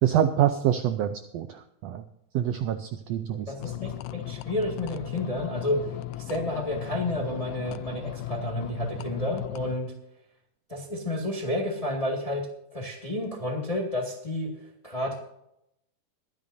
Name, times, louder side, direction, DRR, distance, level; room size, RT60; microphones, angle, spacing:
voice 1, 0.0-2.0 2.3-3.5, right 10 dB, 90° right, 8 dB, 1.4 m, -26 dB
voice 2, 3.5-5.9 6.3-9.9 10.7-12.4 12.7-14.5 14.8-15.2, left 1 dB, 20° left, 1 dB, 1.0 m, -30 dB
sound 1, 3.6-9.8, left 14 dB, 90° left, 2.2 m, -37 dB
22.0 x 10.5 x 2.7 m, 0.78 s
omnidirectional pair, 3.8 m